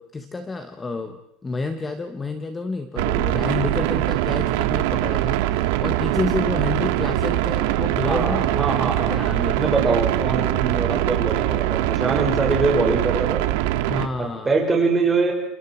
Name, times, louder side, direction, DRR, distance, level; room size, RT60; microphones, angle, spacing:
voice 1, 0.0-8.7 9.1-9.7 13.9-14.6, left 3 dB, 10° left, 8 dB, 1.2 m, -29 dB
sound 1, 3.0-14.1, right 14 dB, 80° right, 1.6 m, -22 dB
voice 2, 8.0-9.2 9.6-13.4 14.2-15.3, right 3 dB, 10° right, 0 dB, 5.4 m, -23 dB
29.0 x 27.0 x 4.6 m, 0.89 s
cardioid pair, 170°, 0 cm